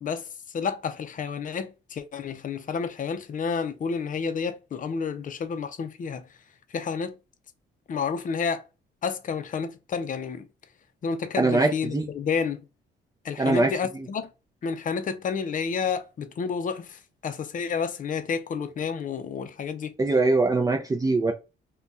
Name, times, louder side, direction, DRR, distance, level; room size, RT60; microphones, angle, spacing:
voice 1, 0.0-6.3 6.7-7.2 7.9-8.6 9.0-10.4 11.0-12.6 13.2-14.3 14.6-19.9, left 6 dB, 40° left, 0.5 m, -30 dB
voice 2, 11.4-12.0 13.4-14.1 20.0-21.3, right 3 dB, 20° right, 0.4 m, -23 dB
2.6 x 2.3 x 3.4 m
cardioid pair, 90°, 20 cm